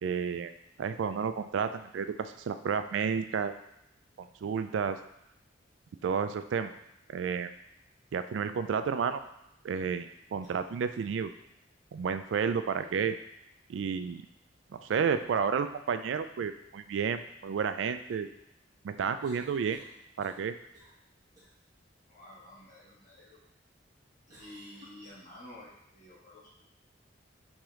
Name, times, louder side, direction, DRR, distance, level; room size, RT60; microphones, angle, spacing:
voice 1, 0.0-0.5 0.8-3.5 4.4-5.0 6.0-6.7 7.1-7.5 8.1-9.2 9.6-11.3 11.9-13.2 13.7-14.2 14.7-18.3 18.8-19.8 20.2-20.6, right 6 dB, 75° right, 10 dB, 0.3 m, -31 dB
sound 1, 10.1-10.6 10.9-11.0 12.8-13.1 14.8-15.7 19.2-20.5 20.7-21.0 21.4-21.5 24.3-25.1, right 1 dB, 20° right, 1.1 m, -57 dB
voice 2, 22.1-23.4 24.3-26.6, left 1 dB, 45° left, -6 dB, 1.5 m, -51 dB
4.9 x 3.6 x 3.0 m, 0.81 s
head